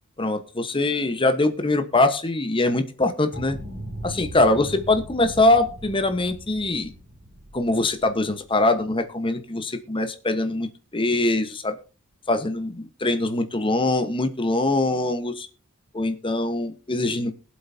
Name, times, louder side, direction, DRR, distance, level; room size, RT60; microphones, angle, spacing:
voice 1, 0.2-3.6 4.0-6.9 7.5-11.8 12.3-15.5 15.9-17.3, left 2 dB, 25° left, 8 dB, 1.2 m, -23 dB
sound 1, 3.3-9.0, right 1 dB, 45° right, 3.4 m, -39 dB
22.0 x 7.8 x 2.8 m, 0.35 s
head